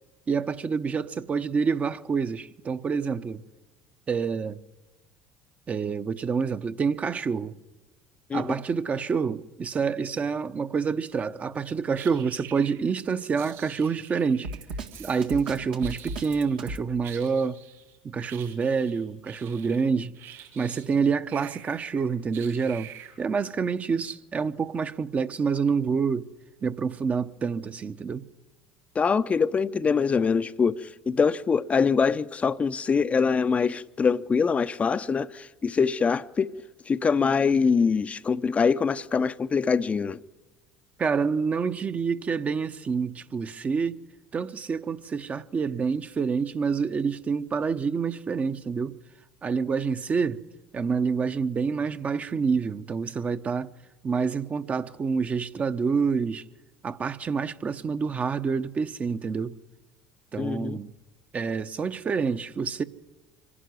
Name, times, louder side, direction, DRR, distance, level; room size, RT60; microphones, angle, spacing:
voice 1, 0.3-3.4 4.1-4.6 5.7-7.5 8.3-14.5 15.0-17.6 18.0-20.2 20.5-22.9 23.2-26.3 26.6-28.2 41.0-44.0 44.3-49.0 49.4-50.4 50.7-53.7 54.0-56.4 56.8-59.6 60.3-60.9 61.3-62.8, right 5 dB, 35° right, 0.9 m, -27 dB
sound 1, 11.9-12.9 13.4-14.6 14.9-15.5 15.8-16.7 17.0-21.0 21.3-23.4, right 12 dB, 60° right, 5.7 m, -47 dB
Drum kit, 14.4-16.9, right 2 dB, 85° right, 1.7 m, -35 dB
voice 2, 28.9-36.5 36.9-40.2 60.4-60.8, left 5 dB, 30° left, 0.6 m, -24 dB
25.0 x 11.5 x 9.5 m
hypercardioid pair, 70°, 4 cm